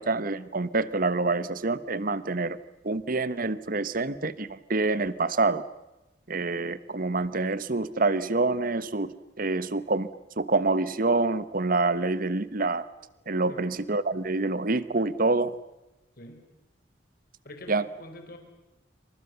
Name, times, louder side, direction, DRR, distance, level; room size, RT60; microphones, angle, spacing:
voice 1, 0.0-2.6 2.8-5.6 6.3-10.1 10.4-12.8 13.3-15.5 17.7-17.8, right 3 dB, 50° right, 15 dB, 1.2 m, -27 dB
voice 2, 16.2-16.5 17.4-18.4, left 1 dB, 50° left, 5 dB, 4.4 m, -47 dB
28.0 x 26.0 x 7.0 m, 0.98 s
head